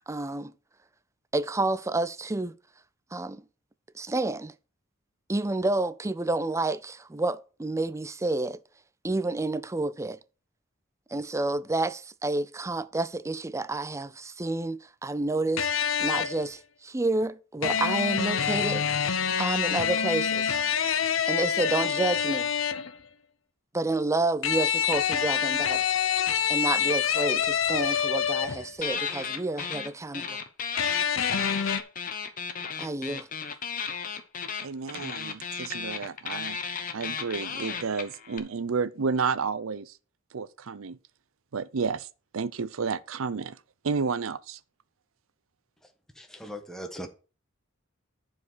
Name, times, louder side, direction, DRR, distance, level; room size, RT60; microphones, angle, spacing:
voice 1, 0.1-0.5 1.3-2.5 3.1-3.4 3.9-4.5 5.3-8.6 9.0-10.2 11.1-15.7 16.0-18.9 19.4-20.6 21.3-22.5 23.7-25.9 26.5-30.4 32.8-33.3, right 2 dB, 15° right, 0.5 m, -29 dB
sound 1, 15.6-16.5 17.6-23.0 24.4-28.8 30.8-31.8, left 8 dB, 75° left, 0.9 m, -26 dB
sound 2, 28.8-29.9 30.1-38.4, left 6 dB, 45° left, 1.2 m, -34 dB
voice 2, 34.6-36.6 36.9-40.0 40.3-41.0 41.5-42.1 42.3-43.6 43.8-44.6, right 5 dB, 85° right, 0.6 m, -31 dB
voice 3, 45.8-47.1, equal, ahead, 1.4 m, -40 dB
11.0 x 4.9 x 6.2 m
head